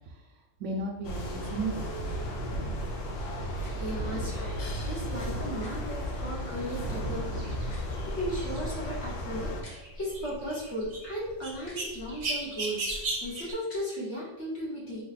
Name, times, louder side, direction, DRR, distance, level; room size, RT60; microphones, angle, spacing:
voice 1, 0.6-2.9 3.9-4.3 4.8-5.5 6.8-7.7, right 3 dB, 80° right, 0 dB, 0.9 m, -36 dB
sound 1, 1.0-9.6, equal, 85° left, 1.0 m, -35 dB
voice 2, 3.5-7.5 8.0-15.0, equal, 65° left, -5 dB, 1.4 m, -36 dB
sound 2, 3.6-3.8 5.6-5.7 7.6-7.9 9.6-9.8 11.6-11.9 13.6-13.9, left 2 dB, 40° left, 0.8 m, -51 dB
sound 3, 6.7-13.5, right 2 dB, 50° right, 0.5 m, -37 dB
3.2 x 2.2 x 4.0 m, 1.0 s
omnidirectional pair, 1.3 m